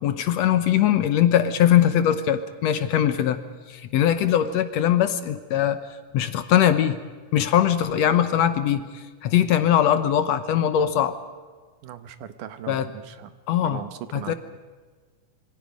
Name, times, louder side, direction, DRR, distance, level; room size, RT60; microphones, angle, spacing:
voice 1, 0.0-3.4 3.7-5.8 6.1-7.0 7.3-11.2 12.7-12.9 13.5-13.8 14.1-14.3, left 10 dB, 70° left, 11 dB, 1.9 m, -21 dB
voice 2, 11.8-14.3, right 10 dB, 85° right, 11 dB, 2.6 m, -39 dB
27.0 x 24.0 x 5.3 m, 1.4 s
omnidirectional pair, 3.5 m